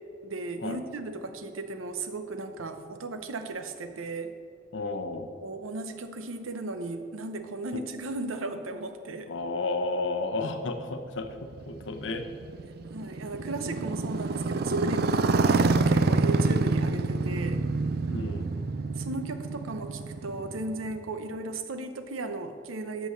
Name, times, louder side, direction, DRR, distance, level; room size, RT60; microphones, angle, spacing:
voice 1, 0.2-4.3 5.4-9.3 12.9-17.7 19.0-23.1, right 2 dB, 80° right, 8 dB, 0.7 m, -35 dB
voice 2, 4.7-5.3 7.7-7.8 9.3-11.3 11.7-12.3 16.6-16.7 18.1-18.5, left 3 dB, 65° left, 7 dB, 0.8 m, -32 dB
Motorcycle, 11.2-21.2, right 3 dB, 50° right, 0.4 m, -27 dB
8.3 x 6.2 x 6.4 m, 2.3 s
head